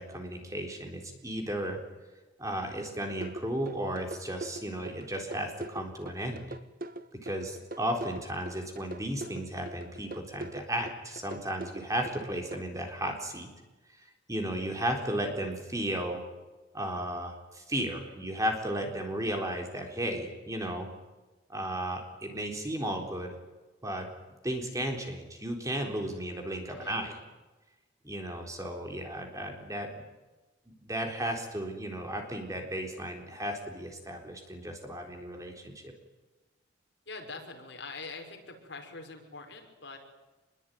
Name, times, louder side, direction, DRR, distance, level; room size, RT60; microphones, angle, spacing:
voice 1, 0.0-1.8 2.4-6.5 7.2-13.5 14.3-16.2 16.7-20.9 21.5-23.3 23.8-24.1 24.4-27.1 28.0-30.0 30.8-35.9, right 1 dB, 15° right, 3 dB, 3.9 m, -34 dB
sound 1, 3.2-12.6, right 2 dB, 45° right, 1.3 m, -41 dB
voice 2, 26.7-27.1 37.1-40.0, left 3 dB, 60° left, 4 dB, 5.5 m, -44 dB
26.5 x 22.0 x 9.4 m, 1.1 s
head